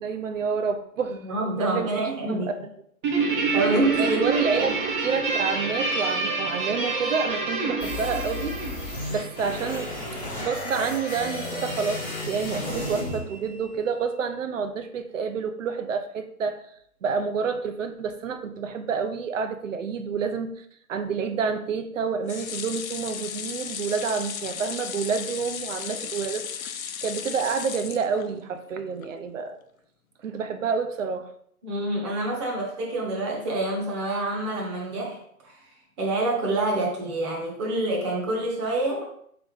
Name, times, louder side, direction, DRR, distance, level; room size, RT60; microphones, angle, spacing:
voice 1, 0.0-1.2 1.6-2.5 4.0-4.7 5.0-8.6 9.1-9.9 10.4-16.6 17.0-26.5 27.0-29.6 30.2-31.3, right 5 dB, 60° right, 8 dB, 0.6 m, -28 dB
voice 2, 1.2-2.5 3.5-4.7 31.6-35.6 36.0-39.1, right 2 dB, 20° right, -2 dB, 0.8 m, -27 dB
Guitar, 3.0-9.7, right 4 dB, 35° right, 1.1 m, -27 dB
sound 1, 7.8-13.8, left 1 dB, 5° left, 0.5 m, -33 dB
sound 2, 22.3-28.6 29.0-29.1 29.4-29.5, left 8 dB, 65° left, 0.6 m, -35 dB
4.0 x 3.4 x 3.8 m, 0.67 s
hypercardioid pair, 145°, 44 cm